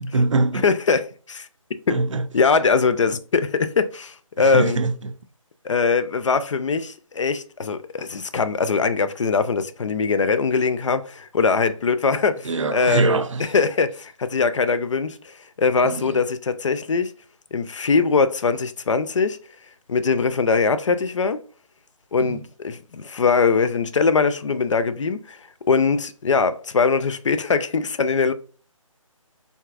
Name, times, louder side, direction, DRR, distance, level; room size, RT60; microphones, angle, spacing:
voice 1, 0.0-0.7 1.9-2.3 4.4-5.2 12.4-13.5 15.8-16.2 22.2-22.4, right 3 dB, 60° right, 0.5 m, -23 dB
voice 2, 0.6-1.5 2.3-4.8 5.6-13.2 13.5-15.2 15.6-17.1 17.5-19.4 19.9-21.4 22.1-25.4 25.7-28.3, left 4 dB, 60° left, 0.4 m, -21 dB
3.5 x 2.7 x 2.4 m
figure-of-eight pair, 155°, 18 cm